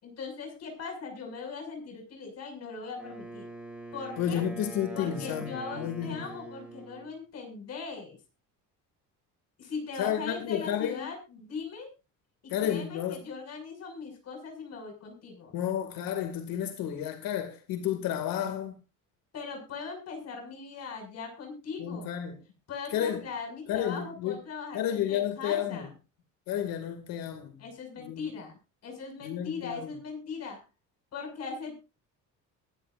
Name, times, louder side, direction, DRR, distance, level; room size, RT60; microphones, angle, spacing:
voice 1, 0.0-3.5 3.9-4.4 4.9-8.2 9.6-11.9 12.4-15.6 19.3-22.1 22.7-25.9 27.6-30.6 31.1-31.8, left 5 dB, 50° left, 6.4 m, -40 dB
Wind instrument woodwind instrument, 3.0-7.1, right 2 dB, 5° right, 6.5 m, -43 dB
voice 2, 4.2-6.2 10.0-11.0 12.5-13.2 15.5-18.7 21.8-22.4 22.9-23.2 23.7-24.4 24.7-25.9 26.5-27.5 28.0-28.3 29.2-29.9, left 10 dB, 90° left, 2.4 m, -31 dB
23.0 x 11.0 x 2.6 m
cardioid pair, 160°, 34 cm